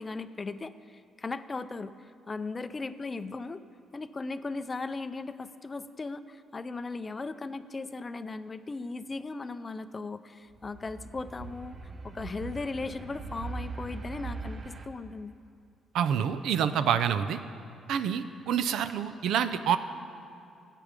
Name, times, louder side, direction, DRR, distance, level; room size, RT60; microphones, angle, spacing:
voice 1, 0.0-3.6 3.9-15.3, left 3 dB, 25° left, 12 dB, 0.4 m, -37 dB
sound 1, 10.5-14.9, right 3 dB, 40° right, 0.8 m, -40 dB
voice 2, 15.9-17.4 17.9-19.8, right 8 dB, 80° right, 11 dB, 0.5 m, -27 dB
13.5 x 8.4 x 5.1 m, 2.6 s
cardioid pair, 100°, 0 cm